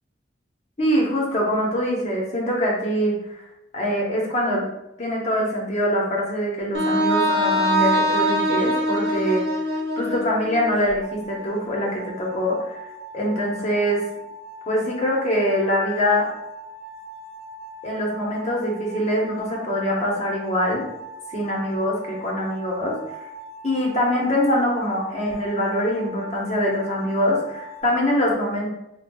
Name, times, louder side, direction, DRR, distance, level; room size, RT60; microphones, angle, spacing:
voice 1, 0.8-3.1 3.7-4.6 5.0-9.4 10.0-12.8 13.1-14.0 14.7-16.3 17.8-20.8 21.3-23.0 23.6-28.7, equal, 40° left, -3 dB, 0.9 m, -23 dB
Wind instrument woodwind instrument, 6.7-10.8, equal, 65° right, 0.8 m, -22 dB
sound 1, 11.0-27.8, right 2 dB, 15° right, 0.5 m, -40 dB
5.3 x 2.3 x 2.2 m, 0.87 s
head